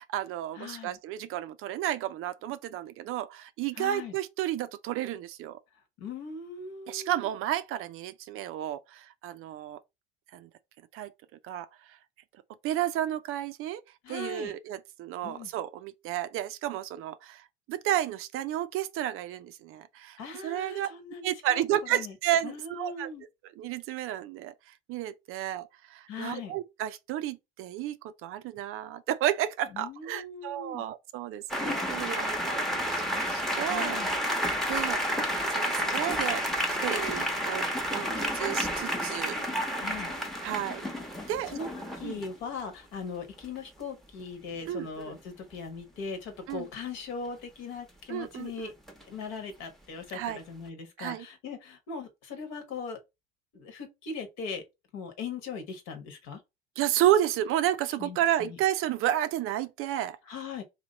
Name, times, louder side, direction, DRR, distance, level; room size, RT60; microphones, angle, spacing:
voice 1, 0.0-5.6 6.9-9.8 10.3-10.5 10.9-11.1 11.4-12.0 12.6-13.8 14.1-20.9 21.2-23.1 23.6-32.7 33.1-34.0 34.7-35.0 35.5-36.4 36.8-39.4 40.4-40.8 41.3-41.5 42.0-42.2 44.7-45.1 46.5-46.6 48.1-48.7 50.1-50.4 51.0-51.2 56.8-60.2, right 12 dB, 45° right, 0.4 m, -32 dB
voice 2, 0.5-1.0 3.7-4.1 5.7-7.3 14.0-14.5 15.2-15.5 20.2-22.1 22.4-23.2 26.1-26.5 29.7-30.8 33.7-34.2 39.8-40.1 41.2-41.7 42.0-48.7 49.1-53.0 53.5-54.6 54.9-56.4 58.0-58.6 60.2-60.6, left 5 dB, 55° left, 1.4 m, -39 dB
sound 1, 31.5-42.3 44.2-44.3 44.6-44.9 48.9-49.1, equal, ahead, 0.9 m, -30 dB
2.9 x 2.7 x 4.0 m
hypercardioid pair, 75°, 30 cm